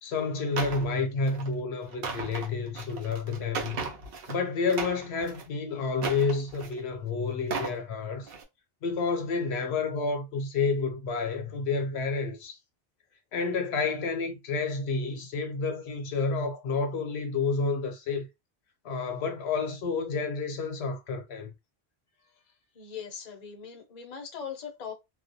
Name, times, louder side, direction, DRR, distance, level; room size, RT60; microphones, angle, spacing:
voice 1, 0.0-3.8 4.3-8.3 8.8-12.6 13.3-18.3 18.8-21.5, left 4 dB, 75° left, 0.9 m, -30 dB
sound 1, 0.6-0.9 1.2-1.5 1.9-4.4 4.7-5.5 6.0-6.8 7.3-7.8 8.2-8.4, right 4 dB, 65° right, 0.8 m, -36 dB
voice 2, 22.7-24.9, left 7 dB, 45° left, 0.7 m, -40 dB
2.3 x 2.1 x 2.6 m
omnidirectional pair, 1.1 m